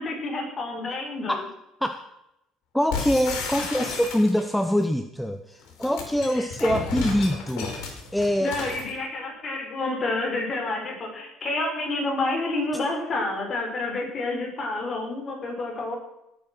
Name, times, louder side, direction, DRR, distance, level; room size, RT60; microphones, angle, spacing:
voice 1, 0.0-1.4 6.3-6.7 8.4-16.0, left 2 dB, 35° left, 1 dB, 4.9 m, -29 dB
voice 2, 2.7-8.6, equal, 5° left, 7 dB, 0.8 m, -24 dB
sound 1, 2.9-4.6 5.6-8.9, left 4 dB, 85° left, 4.9 m, -33 dB
18.5 x 8.9 x 6.1 m, 0.84 s
cardioid pair, 130°, 0 cm